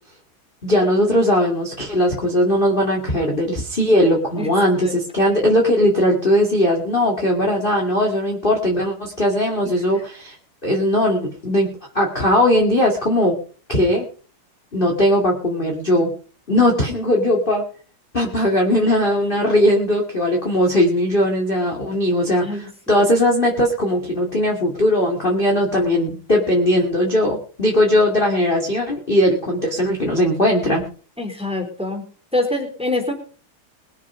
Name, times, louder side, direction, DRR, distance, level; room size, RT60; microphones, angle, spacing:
voice 1, 0.6-10.4 10.6-13.4 13.7-14.1 14.7-16.1 16.5-17.6 18.1-30.9, left 1 dB, 20° left, 0 dB, 2.2 m, -19 dB
voice 2, 31.2-32.0 32.3-33.1, left 2 dB, ahead, 4 dB, 3.1 m, -24 dB
22.0 x 7.4 x 5.1 m, 0.41 s
omnidirectional pair, 3.7 m